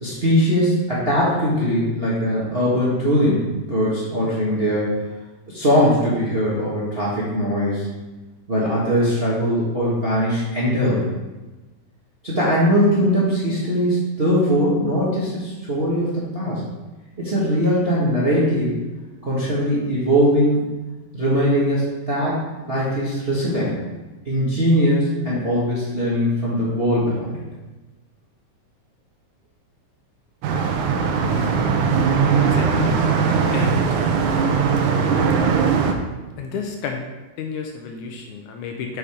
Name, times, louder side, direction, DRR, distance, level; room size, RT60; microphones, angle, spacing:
voice 1, 0.0-5.0 5.5-7.9 8.5-11.0 12.2-16.6 17.2-18.8 19.2-20.6 21.1-22.4 22.7-23.8 24.2-27.3, equal, 30° right, -7 dB, 1.1 m, -20 dB
sound 1, 30.4-35.9, right 6 dB, 75° right, 2.0 m, -19 dB
voice 2, 32.4-32.9 33.5-34.0 36.4-37.0 37.4-39.0, left 5 dB, 75° left, 3 dB, 2.0 m, -31 dB
7.0 x 5.1 x 5.0 m, 1.2 s
omnidirectional pair, 3.8 m